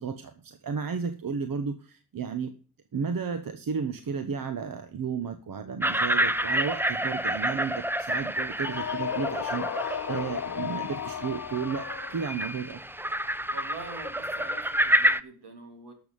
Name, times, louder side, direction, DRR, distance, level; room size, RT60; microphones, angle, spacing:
voice 1, 0.0-2.5 2.9-12.8, right 6 dB, 55° right, 8 dB, 1.4 m, -33 dB
sound 1, 5.8-15.2, equal, 5° right, 0.8 m, -29 dB
sound 2, 8.6-12.5, left 9 dB, 45° left, 0.8 m, -34 dB
voice 2, 13.5-15.9, right 3 dB, 75° right, 4 dB, 3.3 m, -44 dB
12.0 x 7.2 x 5.4 m, 0.39 s
hypercardioid pair, 40°, 41 cm